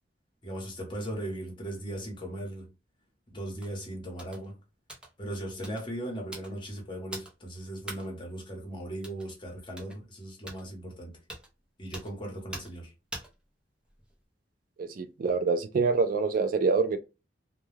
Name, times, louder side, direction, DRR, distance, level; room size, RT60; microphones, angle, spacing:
voice 1, 0.4-2.7 3.3-4.6 5.2-11.2 11.8-12.9, right 1 dB, 30° left, 0.9 m, -38 dB
sound 1, 3.6-3.8 4.2-4.5 4.9-5.1 5.6-5.9 6.3-6.6 7.1-7.3 7.9-8.1 9.0-9.3 9.8-10.0 10.5-10.6 11.3-11.5 11.9-12.1 12.5-12.8 13.1-13.3 13.9-14.2, right 1 dB, 5° right, 0.6 m, -42 dB
voice 2, 14.8-17.0, right 4 dB, 50° right, 0.3 m, -26 dB
2.2 x 2.2 x 3.1 m
head